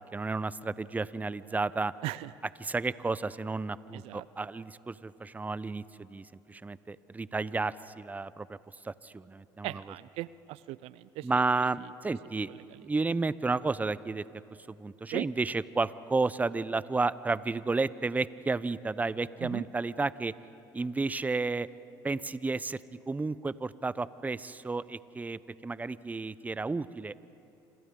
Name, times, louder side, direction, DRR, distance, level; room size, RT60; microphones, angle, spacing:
voice 1, 0.0-1.9 2.6-8.6 8.8-9.8 11.2-12.5 12.8-14.2 14.7-20.3 20.7-21.7 22.0-22.8 23.1-27.2, right 3 dB, 15° right, 17 dB, 0.6 m, -32 dB
voice 2, 3.9-4.3 9.6-11.3 11.6-11.7 12.5-12.8 15.1-15.3 19.4-19.6, right 18 dB, 65° right, 18 dB, 0.4 m, -38 dB
27.0 x 27.0 x 3.8 m, 2.7 s
hypercardioid pair, 75°, 11 cm